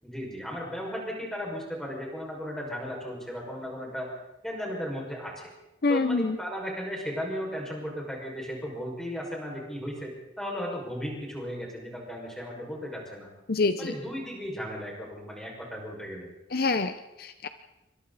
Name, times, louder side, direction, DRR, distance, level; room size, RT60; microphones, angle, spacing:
voice 1, 0.0-4.1 4.4-5.5 5.9-13.3 13.8-16.3, equal, 5° left, -1 dB, 5.9 m, -36 dB
voice 2, 5.8-6.4 13.5-13.9 16.5-17.5, left 3 dB, 55° left, 10 dB, 0.8 m, -26 dB
27.0 x 24.0 x 4.2 m, 0.95 s
head